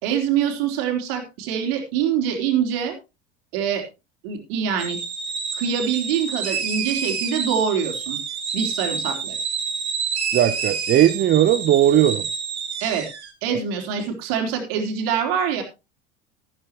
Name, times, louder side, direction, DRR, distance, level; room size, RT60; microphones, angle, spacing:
voice 1, 0.0-2.9 3.5-3.8 4.2-5.0 5.5-8.2 8.5-9.4 12.8-13.1 13.4-15.6, right 8 dB, 65° right, 4 dB, 3.6 m, -24 dB
sound 1, 4.8-13.3, right 5 dB, 85° right, 3.0 m, -28 dB
voice 2, 10.3-12.3, right 11 dB, 35° right, 11 dB, 0.8 m, -17 dB
13.5 x 12.0 x 3.0 m, 0.26 s
hypercardioid pair, 80°, 33 cm